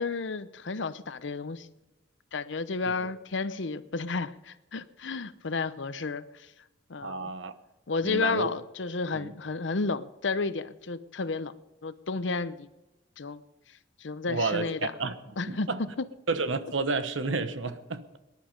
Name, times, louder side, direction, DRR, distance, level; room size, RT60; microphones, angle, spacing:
voice 1, 0.0-1.7 2.3-6.5 6.9-7.3 7.9-11.5 11.8-12.7 13.2-13.4 14.0-14.9 15.4-15.7 16.0-16.1, left 4 dB, 75° left, 0.8 m, -32 dB
voice 2, 7.0-7.5 8.0-8.5 9.2-9.3 14.3-15.2 15.5-15.8 16.3-18.2, right 3 dB, 90° right, 1.2 m, -31 dB
19.0 x 11.0 x 5.3 m
head